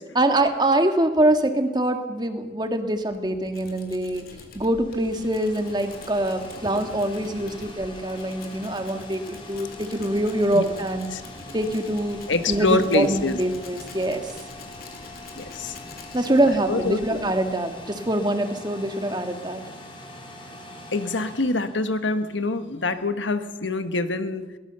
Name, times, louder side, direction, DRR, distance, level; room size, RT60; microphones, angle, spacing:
voice 1, 0.1-4.3 4.5-11.1 11.5-12.2 12.5-14.3 16.1-19.6, right 1 dB, 25° right, 6 dB, 1.8 m, -24 dB
Tools, 2.8-18.2, left 2 dB, 55° left, 3.5 m, -46 dB
sound 1, 4.4-22.5, left 2 dB, 25° left, 3.7 m, -43 dB
voice 2, 12.3-13.4 15.4-15.7 16.7-17.2 20.9-24.5, left 3 dB, 90° left, 9 dB, 1.5 m, -25 dB
23.0 x 19.0 x 6.9 m, 1.2 s
head